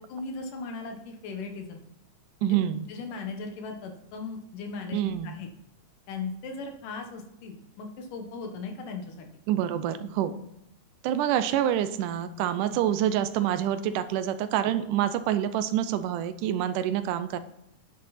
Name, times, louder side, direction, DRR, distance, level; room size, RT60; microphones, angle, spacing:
voice 1, 0.1-1.8 2.4-2.6 2.9-5.5 6.1-9.3, left 4 dB, 90° left, 4 dB, 3.0 m, -37 dB
voice 2, 2.4-2.9 4.9-5.4 9.5-10.3 11.0-17.4, right 11 dB, 85° right, 11 dB, 2.2 m, -27 dB
10.5 x 8.3 x 4.2 m, 0.82 s
omnidirectional pair, 3.6 m